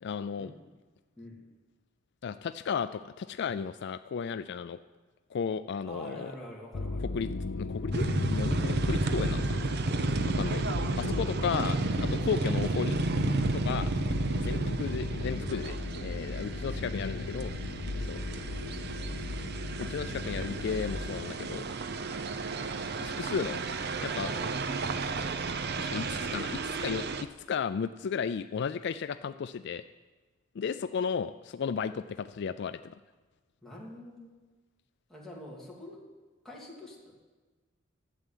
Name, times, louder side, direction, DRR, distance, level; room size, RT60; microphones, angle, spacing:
voice 1, 0.0-0.5 2.2-4.8 5.3-6.3 7.1-9.6 10.2-13.0 13.5-13.9 14.3-15.8 16.0-17.5 17.9-18.2 19.8-21.7 23.0-23.6 24.0-24.3 25.8-29.8 30.5-33.0, left 6 dB, 60° left, 12 dB, 0.4 m, -34 dB
voice 2, 5.8-7.0 24.3-24.5 33.6-34.3 35.1-36.0 36.4-37.1, left 1 dB, ahead, -5 dB, 2.7 m, -46 dB
sound 1, 6.7-21.2, left 3 dB, 85° left, 0.7 m, -35 dB
sound 2, 7.9-27.2, right 3 dB, 55° right, 0.7 m, -32 dB
11.5 x 8.0 x 9.1 m, 1.3 s
head